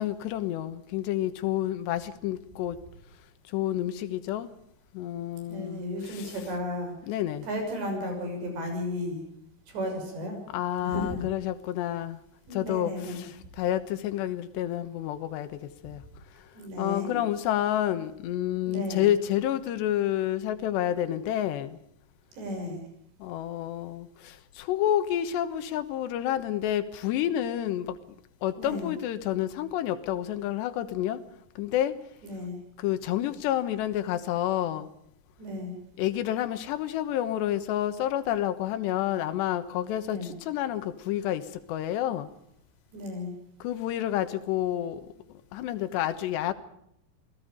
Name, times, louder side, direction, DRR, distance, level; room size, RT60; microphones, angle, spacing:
voice 1, 0.0-2.8 3.5-4.5 4.9-6.3 7.1-7.5 10.5-12.2 12.5-15.5 15.8-16.0 16.8-21.8 23.2-28.0 28.4-31.2 31.6-31.9 32.8-34.9 36.0-41.4 41.7-42.3 43.6-45.0 45.5-46.5, left 12 dB, 85° left, 10 dB, 3.4 m, -29 dB
voice 2, 5.5-6.9 7.4-9.2 9.7-10.4 10.8-11.2 12.5-13.3 16.5-17.2 18.6-19.1 22.3-22.9 28.6-28.9 32.2-32.6 35.4-35.7 40.0-40.4 42.9-43.3, left 1 dB, 90° right, 4 dB, 8.5 m, -34 dB
27.5 x 18.5 x 5.2 m, 0.75 s
omnidirectional pair, 4.9 m